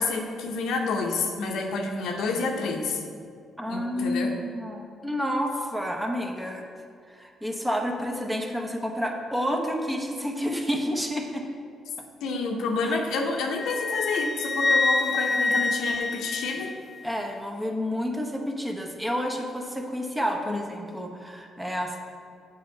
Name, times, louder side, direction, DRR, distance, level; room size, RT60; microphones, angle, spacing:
voice 1, 0.0-3.0 3.7-4.4 12.2-16.8 20.5-20.6, left 3 dB, 85° left, 2 dB, 0.9 m, -29 dB
voice 2, 3.6-6.6 7.1-11.4 12.8-12.9 17.0-22.0, equal, 5° right, 1 dB, 1.0 m, -30 dB
Wind instrument woodwind instrument, 13.5-17.0, left 3 dB, 25° left, 0.5 m, -26 dB
7.8 x 4.3 x 5.7 m, 2.3 s
cardioid pair, 90°, 0 cm